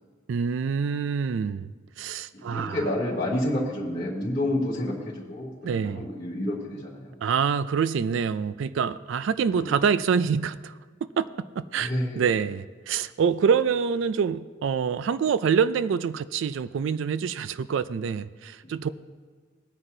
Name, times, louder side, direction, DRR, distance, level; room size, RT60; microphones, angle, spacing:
voice 1, 0.3-2.9 5.6-6.1 7.2-10.7 11.2-11.3 11.6-18.9, right 6 dB, 65° right, 15 dB, 0.3 m, -26 dB
voice 2, 2.3-7.1 9.6-9.8 11.8-12.2, left 1 dB, 25° left, -9 dB, 2.5 m, -29 dB
19.0 x 9.7 x 2.7 m, 1.5 s
head